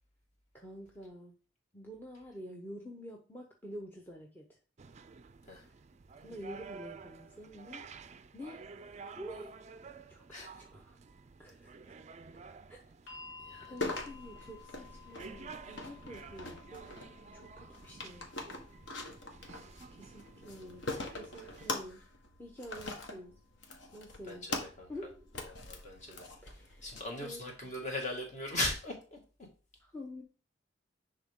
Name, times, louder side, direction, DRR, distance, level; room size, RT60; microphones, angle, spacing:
voice 1, 0.5-1.3 1.7-4.6 6.2-7.8 8.3-8.6 9.2-9.6 10.1-11.0 11.4-12.0 12.7-12.8 13.7-16.9 17.3-18.3 19.9-22.1 22.4-23.3 23.9-24.5 24.9-25.2 25.5-25.6 26.4-26.9 27.2-27.7 29.8-30.2, equal, 10° left, 0.9 m, -48 dB
sound 1, 4.8-21.8, right 5 dB, 35° right, 0.4 m, -52 dB
sound 2, 13.1-25.1 26.2-26.3, left 5 dB, 85° left, 1.6 m, -58 dB
voice 2, 13.4-13.9 24.2-24.9 25.4-29.2, left 1 dB, 40° left, 2.1 m, -39 dB
sound 3, 13.8-27.0, left 2 dB, 65° left, 1.4 m, -43 dB
10.5 x 3.8 x 3.7 m
head